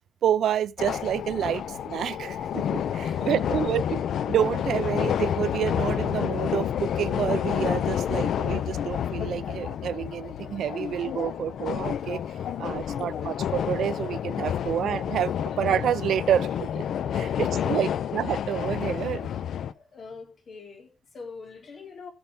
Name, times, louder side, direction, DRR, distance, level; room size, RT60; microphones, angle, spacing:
voice 1, 0.2-4.0 4.3-12.2 12.6-16.8 17.1-19.3, right 10 dB, 75° right, 0.5 m, -28 dB
sound 1, 0.8-19.7, left 9 dB, 75° left, 0.7 m, -29 dB
voice 2, 2.8-3.5 17.2-17.9 19.7-22.1, left 4 dB, 50° left, 3.4 m, -44 dB
17.5 x 7.0 x 3.7 m
wide cardioid pair, 160°, 0 cm